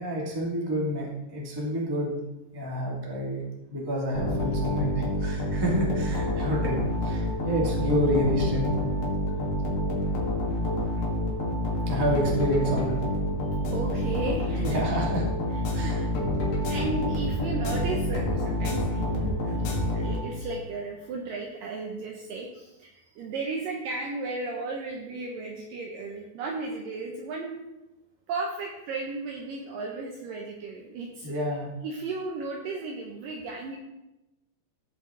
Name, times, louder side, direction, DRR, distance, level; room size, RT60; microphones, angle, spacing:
voice 1, 0.0-2.1 2.5-3.4 3.7-8.7 11.9-13.0 14.6-15.2 15.7-16.0 31.2-31.7, equal, 15° right, -4 dB, 0.8 m, -28 dB
sound 1, 4.1-20.6, left 1 dB, 75° left, 3.7 m, -28 dB
voice 2, 13.7-14.9 15.8-16.1 16.7-27.6 28.3-33.8, right 3 dB, 75° right, 1 dB, 2.1 m, -35 dB
15.5 x 5.8 x 3.8 m, 1.0 s
omnidirectional pair, 4.9 m